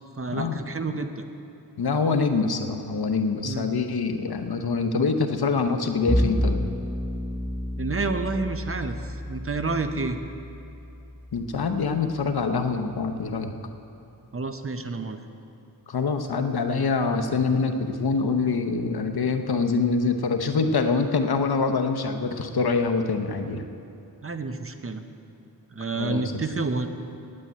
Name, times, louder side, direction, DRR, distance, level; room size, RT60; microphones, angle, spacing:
voice 1, 0.2-1.2 3.4-3.7 7.8-10.2 14.3-15.2 24.2-25.1 25.7-26.9, right 3 dB, 35° right, 8 dB, 0.8 m, -29 dB
voice 2, 1.8-6.6 11.3-13.5 15.9-23.6 26.0-26.3, left 4 dB, 75° left, 6 dB, 0.9 m, -25 dB
Bowed string instrument, 6.1-12.5, equal, ahead, 1.2 m, -30 dB
9.2 x 8.7 x 8.6 m, 2.8 s
wide cardioid pair, 75°, 38 cm